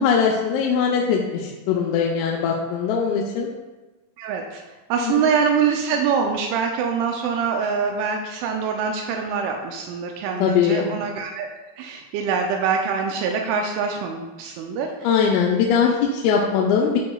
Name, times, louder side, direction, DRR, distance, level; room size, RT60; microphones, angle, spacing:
voice 1, 0.0-3.5 5.0-5.3 10.4-10.9 15.0-17.0, left 6 dB, 85° left, -2 dB, 3.2 m, -21 dB
voice 2, 4.2-4.6 4.9-11.5 11.8-14.9, right 6 dB, 90° right, 2 dB, 2.6 m, -24 dB
11.5 x 4.7 x 2.3 m, 1.2 s
omnidirectional pair, 6.0 m